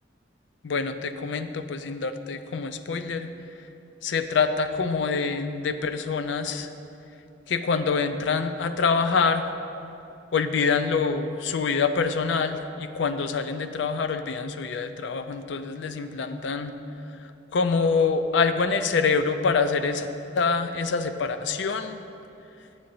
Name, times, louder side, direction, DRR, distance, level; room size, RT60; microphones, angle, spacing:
voice 1, 0.6-3.3 4.0-6.7 7.5-9.5 10.3-16.8 17.2-20.1 20.3-22.0, left 5 dB, 70° left, 10 dB, 0.4 m, -25 dB
8.7 x 3.8 x 7.0 m, 2.8 s
head